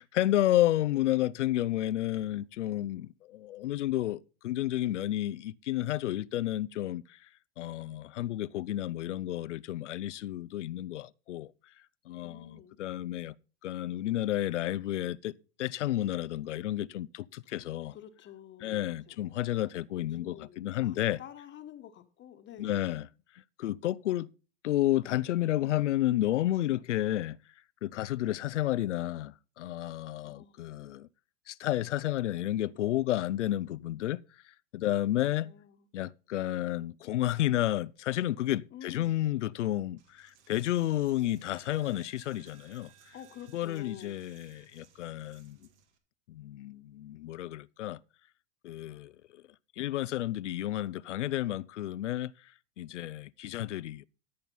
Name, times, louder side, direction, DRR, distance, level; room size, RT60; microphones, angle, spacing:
voice 1, 0.0-7.3 7.6-11.5 12.1-13.3 13.6-15.3 15.6-18.0 18.6-21.2 22.6-23.1 23.3-24.3 24.6-27.4 27.8-31.1 31.5-35.5 35.9-43.1 43.5-45.7 46.3-48.0 48.6-49.4 49.8-54.1, left 14 dB, 85° left, 0.5 m, -31 dB
voice 2, 12.2-12.8 17.5-19.2 19.9-22.8 28.2-28.3 30.2-30.6 35.2-35.8 38.7-39.1 43.1-44.2, left 11 dB, 30° left, 1.2 m, -49 dB
Coin (dropping), 40.0-46.0, right 8 dB, 70° right, 2.1 m, -61 dB
13.5 x 5.8 x 5.4 m
hypercardioid pair, 105°, 35 cm